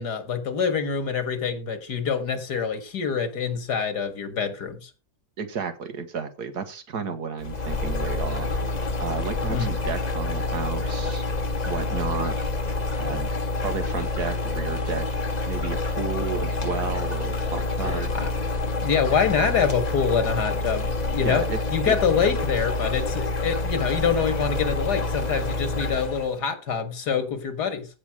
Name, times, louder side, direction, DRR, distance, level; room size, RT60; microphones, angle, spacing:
voice 1, 0.0-4.9 9.5-9.7 17.9-18.3 18.8-21.5 21.7-27.9, left 6 dB, 80° left, 2.2 m, -25 dB
voice 2, 5.4-8.5 9.0-11.2 11.7-12.5 13.0-13.3 13.6-15.1 15.5-18.1 21.2-21.6 21.9-22.0, right 6 dB, 70° right, 2.0 m, -32 dB
sound 1, 7.4-26.3, left 2 dB, 30° left, 0.9 m, -27 dB
15.0 x 5.6 x 4.8 m
omnidirectional pair, 1.7 m